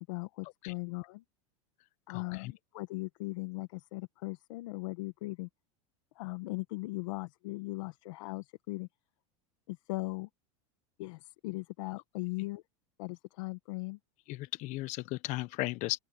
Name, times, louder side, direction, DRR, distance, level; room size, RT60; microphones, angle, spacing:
voice 1, 0.1-1.2 2.1-5.5 6.2-8.9 9.7-10.3 11.0-12.6 13.0-14.0, left 23 dB, 70° left, 1.8 m, -39 dB
voice 2, 2.1-2.5 14.3-16.0, left 20 dB, 45° left, 1.1 m, -36 dB
open air
supercardioid pair, 140°, 17 cm